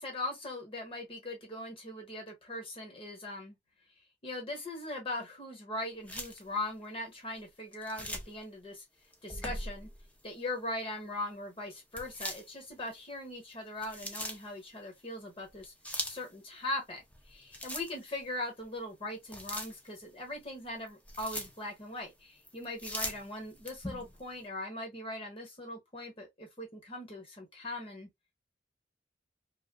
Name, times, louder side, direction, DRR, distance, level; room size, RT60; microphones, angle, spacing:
voice 1, 0.0-3.5 4.2-8.8 9.2-9.9 10.2-15.7 16.0-17.0 17.3-28.1, left 1 dB, 30° left, 1.3 m, -40 dB
sound 1, 6.1-6.4 7.7-8.4 9.1-10.1 12.0-12.9 13.5-14.5 15.5-16.3 17.0-18.2 18.6-18.7 19.3-20.0 20.7-21.6 22.4-24.2, left 1 dB, 10° left, 0.5 m, -40 dB
2.7 x 2.4 x 2.4 m
head